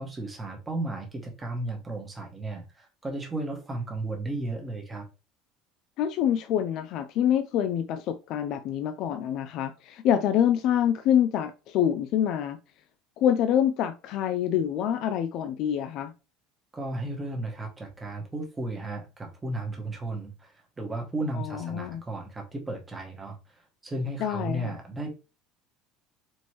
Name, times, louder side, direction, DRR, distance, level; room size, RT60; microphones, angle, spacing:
voice 1, 0.0-5.1 16.7-25.1, right 2 dB, 15° right, 1.1 m, -34 dB
voice 2, 6.0-12.6 13.2-16.1 21.3-22.0 24.2-24.7, left 10 dB, 55° left, 0.3 m, -26 dB
4.3 x 3.0 x 3.1 m
cardioid pair, 155°, 0 cm